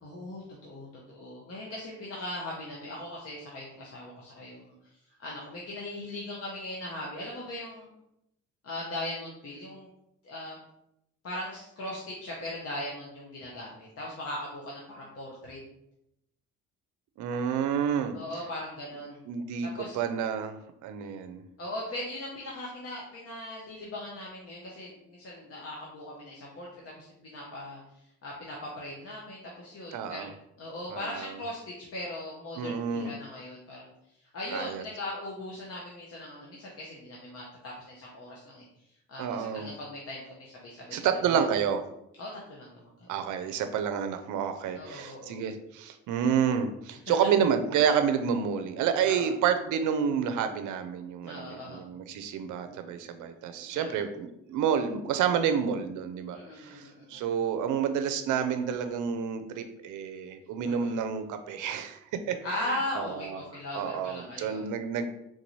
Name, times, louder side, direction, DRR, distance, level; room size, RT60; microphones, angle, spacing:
voice 1, 0.0-4.7 5.2-7.9 8.6-9.9 10.2-10.6 11.2-15.6 18.1-19.2 19.6-20.0 21.6-27.8 28.2-33.9 34.3-38.6 39.1-41.0 41.3-41.4 42.2-43.1 44.7-45.4 49.0-49.3 51.2-51.8 53.7-54.0 56.3-57.3 60.6-60.9 62.4-64.7, left 1 dB, 50° left, -4 dB, 0.9 m, -39 dB
voice 2, 17.2-18.1 19.3-21.4 29.9-30.3 30.9-31.4 32.6-33.1 34.5-34.8 39.2-39.7 40.9-41.8 43.1-63.4 63.7-65.1, right 7 dB, 75° right, 8 dB, 0.5 m, -29 dB
3.8 x 2.6 x 3.0 m, 0.80 s
cardioid pair, 90°, 30 cm